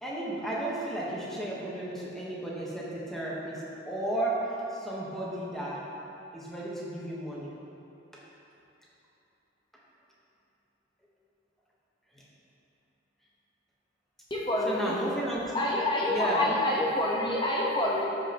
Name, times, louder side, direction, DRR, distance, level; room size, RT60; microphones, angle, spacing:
voice 1, 0.0-5.9 6.3-7.5 8.1-8.2 12.1-12.2 14.6-15.5 16.1-16.6, right 1 dB, ahead, -6 dB, 1.2 m, -33 dB
voice 2, 14.3-14.9 15.5-18.0, left 1 dB, 25° left, -4 dB, 1.1 m, -27 dB
13.5 x 5.2 x 3.0 m, 2.9 s
head